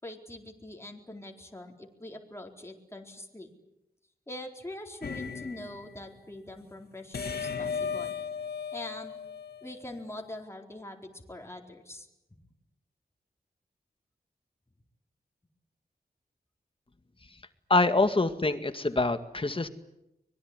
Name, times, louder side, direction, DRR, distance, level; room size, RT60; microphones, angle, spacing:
voice 1, 0.0-3.5 4.3-8.1 8.7-9.2 9.6-12.1, left 1 dB, 15° left, 1 dB, 4.3 m, -43 dB
sound 1, 5.0-5.9 7.1-10.0, left 6 dB, 75° left, 2.3 m, -36 dB
voice 2, 17.7-19.7, left 2 dB, 35° left, 9 dB, 2.1 m, -25 dB
24.5 x 21.5 x 9.8 m, 0.86 s
wide cardioid pair, 90°, 17 cm